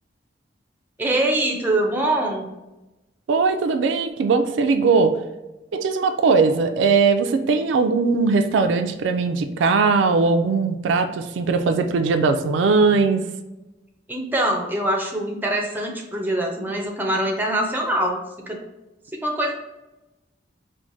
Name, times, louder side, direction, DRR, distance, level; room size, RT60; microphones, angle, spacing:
voice 1, 1.0-2.5 14.1-18.2 18.5-18.6 19.2-19.5, right 1 dB, 10° right, 1 dB, 0.4 m, -23 dB
voice 2, 3.3-5.2 5.7-13.2, right 4 dB, 80° right, 8 dB, 0.3 m, -19 dB
4.5 x 2.1 x 2.6 m, 1.0 s
head